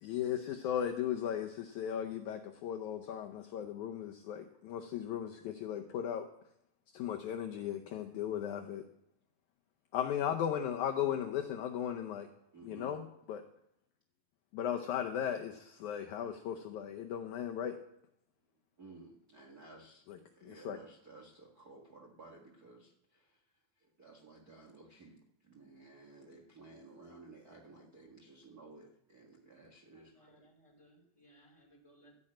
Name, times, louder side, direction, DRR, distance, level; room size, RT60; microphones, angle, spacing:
voice 1, 0.0-6.2 6.9-8.8 9.9-12.3 12.6-13.0 13.3-13.4 14.5-17.8 20.1-20.8, left 9 dB, 85° left, 5 dB, 1.7 m, -36 dB
voice 2, 12.5-13.0 18.8-23.4 23.8-30.5, right 3 dB, 45° right, 0 dB, 1.3 m, -56 dB
voice 3, 29.9-32.1, right 1 dB, 10° left, 0 dB, 2.3 m, -64 dB
13.5 x 6.5 x 8.6 m, 0.78 s
omnidirectional pair, 4.3 m